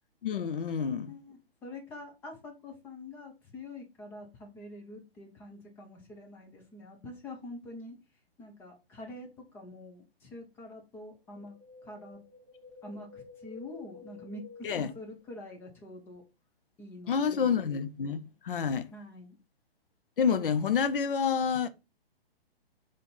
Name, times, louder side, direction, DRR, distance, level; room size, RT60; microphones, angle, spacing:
voice 1, 0.2-1.1 14.6-14.9 17.1-18.9 20.2-21.7, left 6 dB, 60° left, 0.6 m, -28 dB
voice 2, 1.1-8.0 8.4-12.2 12.8-16.2 16.8-17.6 18.9-19.4, left 2 dB, 5° left, 0.5 m, -46 dB
Wind, 11.3-15.6 15.9-16.0, left 4 dB, 30° left, 1.4 m, -52 dB
3.9 x 3.3 x 4.1 m
figure-of-eight pair, 120°, 31 cm